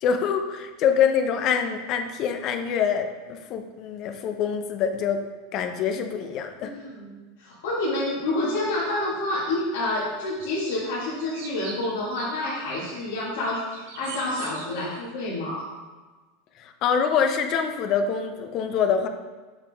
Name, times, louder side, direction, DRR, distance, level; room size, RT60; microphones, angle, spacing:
voice 1, 0.0-5.2 5.5-6.7 16.6-19.1, left 7 dB, 45° left, 6 dB, 0.6 m, -25 dB
voice 2, 6.6-13.6 13.9-15.7, left 2 dB, 75° left, -9 dB, 1.9 m, -28 dB
sound 1, 10.4-10.8 11.2-15.0, right 5 dB, 75° right, 1.0 m, -42 dB
7.3 x 5.2 x 3.5 m, 1.3 s
supercardioid pair, 120°, 0 cm